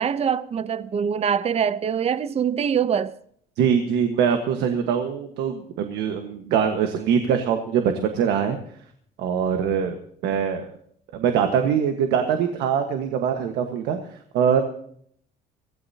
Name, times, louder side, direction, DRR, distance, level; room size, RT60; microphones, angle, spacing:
voice 1, 0.0-3.2, right 7 dB, 40° right, 0.7 m, -24 dB
voice 2, 3.6-8.6 9.2-10.0 10.2-10.7 11.1-14.0 14.3-14.6, right 7 dB, 85° right, 1.5 m, -23 dB
23.0 x 16.5 x 2.8 m
cardioid pair, 110°, 17 cm